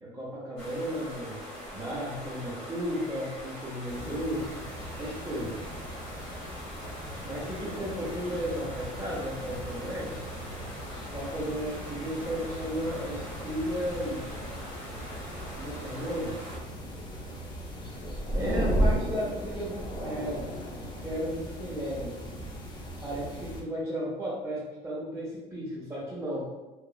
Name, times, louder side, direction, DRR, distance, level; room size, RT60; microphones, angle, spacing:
voice 1, 0.0-1.4 1.7-4.4 5.0-5.6 7.2-10.2 11.1-14.3 15.5-16.4 18.3-20.4 21.0-22.1 23.0-26.5, equal, 15° right, -9 dB, 0.8 m, -34 dB
sound 1, 0.6-16.6, equal, 75° left, 1.3 m, -43 dB
sound 2, 3.9-23.6, equal, 25° left, 0.7 m, -36 dB
2.9 x 2.4 x 2.4 m, 1.1 s
supercardioid pair, 100°, 18 cm